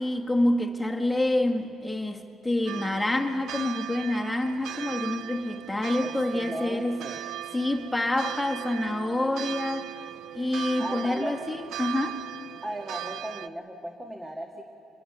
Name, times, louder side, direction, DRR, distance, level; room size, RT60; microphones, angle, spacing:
voice 1, 0.0-7.0 7.5-9.9 10.3-12.2, left 1 dB, 10° left, 1.9 m, -27 dB
sound 1, 2.7-13.5, right 12 dB, 75° right, 0.5 m, -38 dB
voice 2, 6.0-7.2 10.8-11.3 12.6-14.7, right 1 dB, 10° right, 2.0 m, -36 dB
26.5 x 22.0 x 7.0 m
cardioid pair, 95°, 0 cm